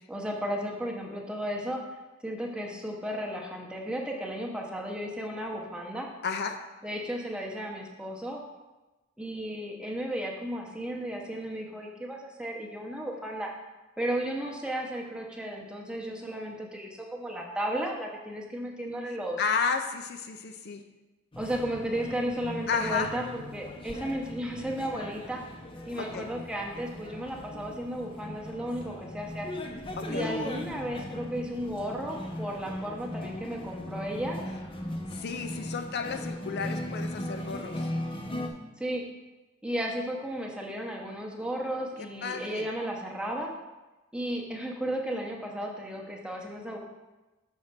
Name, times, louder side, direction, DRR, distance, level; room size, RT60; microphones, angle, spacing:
voice 1, 0.1-1.8 2.2-6.1 6.8-8.4 9.2-13.5 14.0-19.4 21.4-25.4 25.9-29.5 30.1-34.4 38.8-39.0 39.6-43.5 44.1-46.8, equal, 5° right, -1 dB, 0.8 m, -34 dB
voice 2, 6.2-6.6 19.4-20.8 22.7-23.1 26.0-26.3 30.0-30.3 35.2-37.9 42.2-42.7, left 5 dB, 55° left, 6 dB, 0.5 m, -32 dB
sound 1, 21.3-38.5, left 1 dB, 25° left, 0.7 m, -38 dB
6.4 x 4.3 x 5.8 m, 1.1 s
head